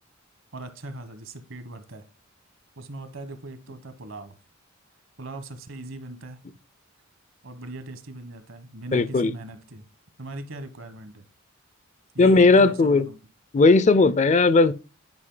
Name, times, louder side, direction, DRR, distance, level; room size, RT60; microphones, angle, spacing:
voice 1, 0.5-2.0 2.8-4.4 5.2-6.4 7.4-9.8 10.2-11.2 12.1-13.2, right 2 dB, 65° right, 1.2 m, -39 dB
voice 2, 8.9-9.3 12.2-13.1 13.5-14.7, left 3 dB, 35° left, 0.4 m, -17 dB
9.7 x 5.0 x 3.8 m
head